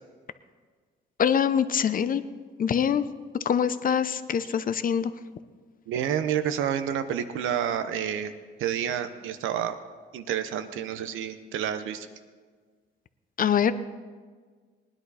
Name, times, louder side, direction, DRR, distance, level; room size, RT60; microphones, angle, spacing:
voice 1, 1.2-2.2 2.6-3.0 3.4-5.1 13.4-13.7, left 8 dB, 45° left, 13 dB, 0.7 m, -24 dB
voice 2, 5.9-8.3 8.6-9.8 10.1-12.1, right 9 dB, 90° right, 10 dB, 0.9 m, -29 dB
19.5 x 10.5 x 4.1 m, 1.6 s
cardioid pair, 90°, 20 cm